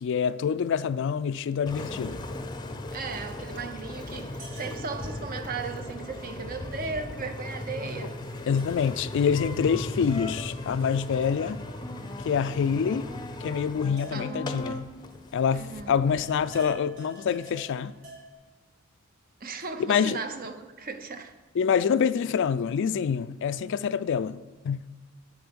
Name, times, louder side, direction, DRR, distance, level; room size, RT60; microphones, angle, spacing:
voice 1, 0.0-2.3 8.5-11.6 12.2-13.1 13.4-15.0 15.3-17.9 19.9-20.2 21.6-24.4 24.6-24.8, left 7 dB, 60° left, 0.3 m, -26 dB
Engine, 1.7-16.6, left 1 dB, 20° left, 0.6 m, -37 dB
voice 2, 2.9-8.2 14.1-14.5 15.5-16.0 19.4-21.3, right 4 dB, 45° right, 0.7 m, -36 dB
sound 1, 4.2-15.7 15.9-18.3, right 1 dB, 65° right, 2.5 m, -51 dB
8.0 x 7.0 x 5.2 m
head